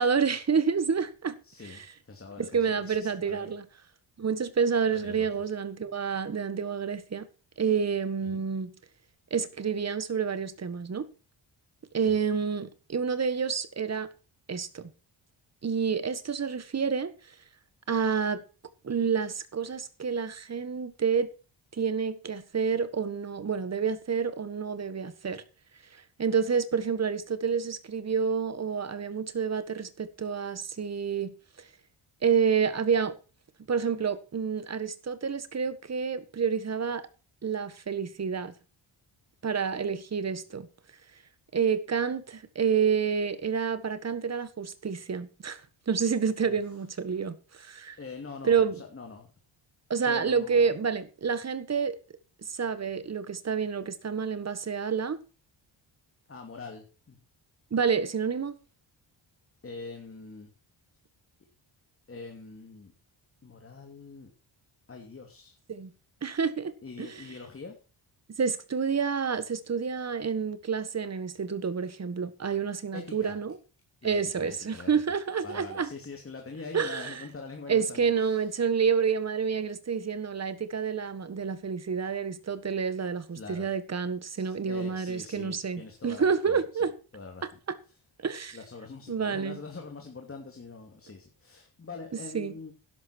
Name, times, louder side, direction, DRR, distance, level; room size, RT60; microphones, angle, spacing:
voice 1, 0.0-1.4 1.6-1.9 2.4-3.6 4.2-7.3 7.6-8.7 9.3-11.1 11.9-14.1 14.5-14.9 15.6-17.1 17.9-18.4 18.8-21.3 21.7-25.4 25.9-31.3 32.2-33.1 33.7-37.0 37.4-38.5 39.4-40.7 41.5-45.6 45.9-48.0 48.4-48.8 49.9-52.0 52.5-55.2 57.7-58.5 65.7-65.9 66.2-66.7 67.0-67.2 68.4-73.6 74.0-75.9 76.7-77.2 77.7-86.9 87.7-87.8 88.2-88.6 89.1-89.6 92.3-92.5, right 6 dB, 35° right, 1.5 m, -29 dB
voice 2, 1.4-3.5 4.9-5.5 8.2-8.4 12.0-12.2 46.4-46.6 48.0-49.3 50.1-50.7 56.3-57.2 59.6-60.5 62.1-62.9 63.4-64.3 64.9-65.6 66.8-67.8 72.9-73.4 74.0-74.9 75.4-78.5 83.3-83.7 84.3-86.6 87.1-87.4 88.5-92.7, left 4 dB, 25° left, 2.8 m, -44 dB
12.0 x 11.5 x 4.5 m
cardioid pair, 125°, 47 cm